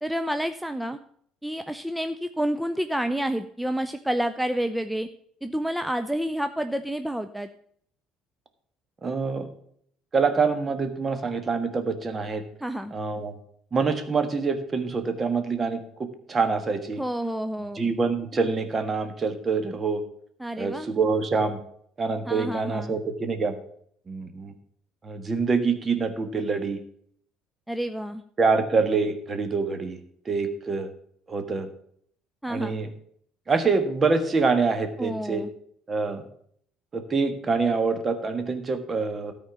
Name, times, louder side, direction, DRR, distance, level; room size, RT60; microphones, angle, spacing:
voice 1, 0.0-1.0 1.4-5.1 5.4-7.5 12.6-12.9 17.0-17.9 20.4-20.9 22.3-23.0 27.7-28.2 32.4-32.7 35.0-35.5, right 1 dB, 5° right, 8 dB, 0.5 m, -29 dB
voice 2, 9.0-9.5 10.1-12.4 12.9-13.3 13.7-15.8 16.3-17.0 17.7-20.0 20.6-21.6 22.0-23.5 24.1-24.5 25.0-26.8 28.4-30.0 30.2-30.9 31.3-31.7 32.5-32.9 33.5-35.4 35.9-36.2 36.9-39.3, right 4 dB, 30° right, 8 dB, 1.5 m, -25 dB
13.0 x 4.4 x 7.1 m, 0.65 s
hypercardioid pair, 65°, 0 cm